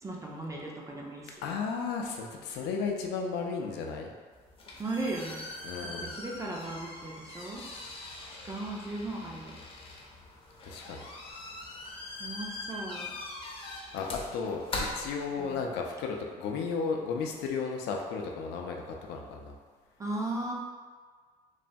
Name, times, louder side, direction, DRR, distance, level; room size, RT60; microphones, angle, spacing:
voice 1, 0.0-1.4 4.8-5.4 6.0-7.6 8.4-9.6 12.2-13.1 15.4-15.6 20.0-20.5, right 2 dB, 20° right, -2 dB, 0.4 m, -36 dB
voice 2, 1.4-4.1 5.6-6.1 10.6-11.1 13.9-19.5, left 5 dB, 85° left, 1 dB, 0.4 m, -34 dB
sound 1, 4.3-15.8, left 2 dB, 35° left, 0.5 m, -42 dB
3.2 x 2.2 x 2.5 m, 1.6 s
cardioid pair, 110°, 17 cm